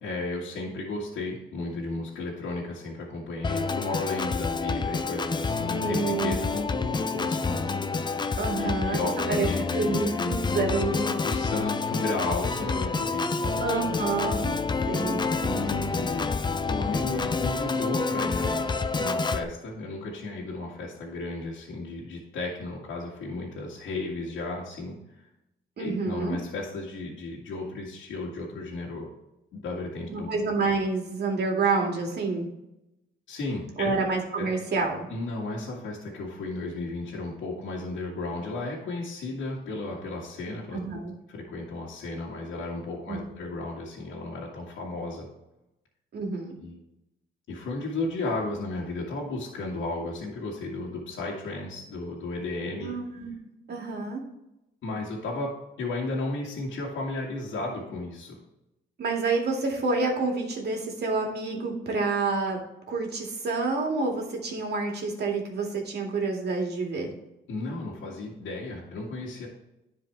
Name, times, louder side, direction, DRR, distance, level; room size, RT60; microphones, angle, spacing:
voice 1, 0.0-7.7 8.6-10.0 11.2-13.6 15.5-16.3 16.7-25.0 25.8-29.1 29.5-30.3 33.3-33.9 34.4-34.5 35.1-40.8 41.3-45.3 46.6-46.8 47.5-52.9 54.8-58.4 67.5-69.5, left 2 dB, 75° left, -4 dB, 2.0 m, -34 dB
Organ, 3.4-19.4, left 4 dB, 20° left, 0.5 m, -28 dB
voice 2, 5.7-6.5 8.4-9.5 9.7-11.2 13.6-15.8 25.8-26.4 30.1-32.5 33.8-35.1 40.7-41.1 43.1-43.2 46.1-46.6 52.8-53.3 53.7-54.2 59.0-62.6 62.9-67.1, right 3 dB, 55° right, 1 dB, 2.3 m, -28 dB
10.5 x 4.8 x 3.4 m, 0.90 s
cardioid pair, 90°, 20 cm